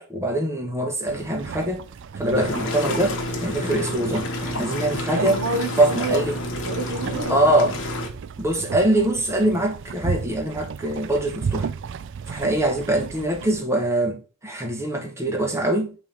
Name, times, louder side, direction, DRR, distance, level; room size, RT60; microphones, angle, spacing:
voice 1, 0.0-1.9 2.2-5.4 5.8-6.4 7.3-7.7 8.4-11.7 12.3-15.9, right 1 dB, 10° right, 1.1 m, -23 dB
sound 1, 1.1-13.6, right 6 dB, 55° right, 0.4 m, -35 dB
sound 2, 2.3-8.1, left 1 dB, 60° left, 1.4 m, -29 dB
voice 2, 5.1-7.4 7.7-7.8, right 2 dB, 80° right, 0.8 m, -29 dB
5.5 x 3.1 x 5.6 m
head